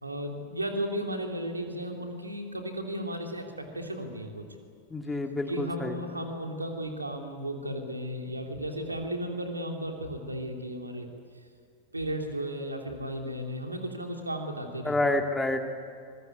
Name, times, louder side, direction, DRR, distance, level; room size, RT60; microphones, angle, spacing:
voice 1, 0.0-4.5 5.5-11.1 11.9-15.0, equal, 80° right, 3 dB, 3.2 m, -34 dB
voice 2, 4.9-6.0 14.8-15.6, left 2 dB, 10° left, 3 dB, 2.5 m, -28 dB
24.5 x 21.5 x 9.6 m, 2.2 s
figure-of-eight pair, 90°, 0 cm